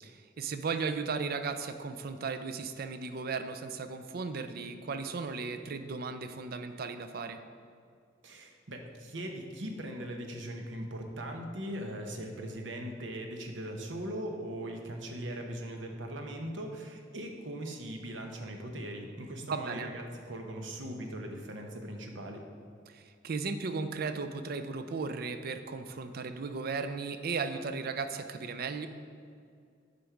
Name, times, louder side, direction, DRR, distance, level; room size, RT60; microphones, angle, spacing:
voice 1, 0.0-7.4 19.5-19.9 22.9-28.9, right 4 dB, 55° right, 9 dB, 0.5 m, -36 dB
voice 2, 8.2-22.4, right 1 dB, 80° right, 3 dB, 1.0 m, -40 dB
8.5 x 5.3 x 4.5 m, 2.3 s
head